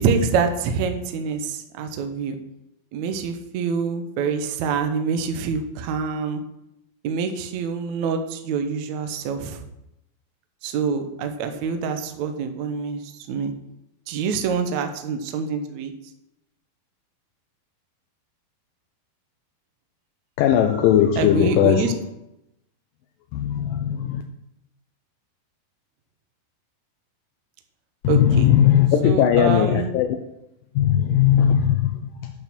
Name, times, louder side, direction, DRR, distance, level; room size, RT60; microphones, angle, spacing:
voice 1, 0.0-2.4 2.9-6.4 7.0-9.6 10.6-13.0 13.3-13.5 14.1-15.9 21.2-21.9 28.1-28.5 29.0-29.9, right 5 dB, 70° right, 7 dB, 1.8 m, -25 dB
voice 2, 20.4-21.9 23.3-24.2 28.0-30.2 30.8-32.3, left 10 dB, 80° left, 4 dB, 2.2 m, -18 dB
8.5 x 6.7 x 6.0 m, 0.86 s
omnidirectional pair, 4.3 m